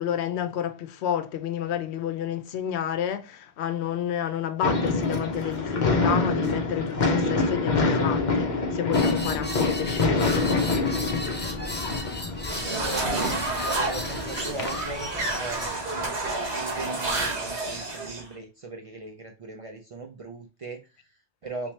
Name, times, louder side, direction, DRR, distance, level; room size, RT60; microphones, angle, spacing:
voice 1, 0.0-10.7, left 9 dB, 85° left, 0.8 m, -30 dB
sound 1, 4.6-16.0, left 3 dB, 50° left, 0.8 m, -27 dB
sound 2, 8.9-15.7, left 1 dB, 15° left, 0.4 m, -36 dB
voice 2, 12.5-13.2 13.6-15.1 15.3-21.7, right 3 dB, 50° right, 0.4 m, -38 dB
sound 3, 12.5-18.2, right 2 dB, 85° right, 1.5 m, -30 dB
3.4 x 3.0 x 3.1 m
omnidirectional pair, 1.1 m